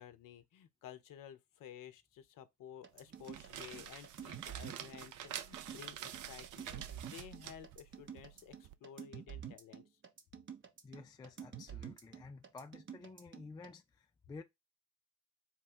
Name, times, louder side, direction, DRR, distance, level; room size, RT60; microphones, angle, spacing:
voice 1, 0.0-10.0, left 10 dB, 45° left, 0.7 m, -54 dB
sound 1, 2.8-13.7, right 8 dB, 25° right, 0.9 m, -49 dB
sound 2, 3.1-8.7, right 10 dB, 45° right, 0.5 m, -48 dB
voice 2, 10.8-14.4, left 4 dB, 10° left, 0.3 m, -52 dB
4.2 x 2.2 x 4.2 m
hypercardioid pair, 55°, 45 cm